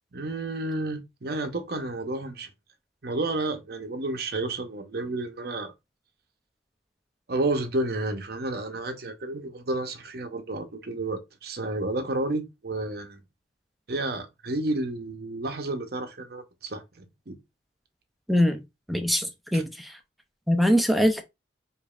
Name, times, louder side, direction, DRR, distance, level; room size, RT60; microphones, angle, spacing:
voice 1, 0.1-2.5 3.0-5.7 7.3-13.2 13.9-17.4 19.5-19.6, right 2 dB, 55° right, 0.7 m, -31 dB
voice 2, 18.3-18.6 18.9-20.0 20.5-21.2, equal, ahead, 0.4 m, -23 dB
5.0 x 2.6 x 2.4 m
head